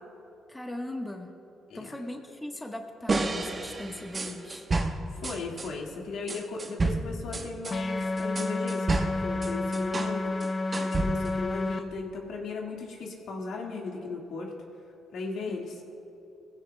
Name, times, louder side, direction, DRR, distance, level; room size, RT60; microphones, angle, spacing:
voice 1, 0.5-1.3 1.7-4.7 15.5-15.6, left 1 dB, 10° left, 2 dB, 1.2 m, -38 dB
sound 1, 3.1-5.7 6.3-10.2 10.4-11.4, right 3 dB, 30° right, 1.0 m, -31 dB
voice 2, 5.1-10.4 10.8-14.5 15.1-15.7, left 3 dB, 75° left, 0 dB, 1.8 m, -37 dB
sound 2, 7.7-11.8, left 2 dB, 35° left, 0.8 m, -30 dB
19.5 x 15.5 x 2.2 m, 2.9 s
cardioid pair, 90°, 0 cm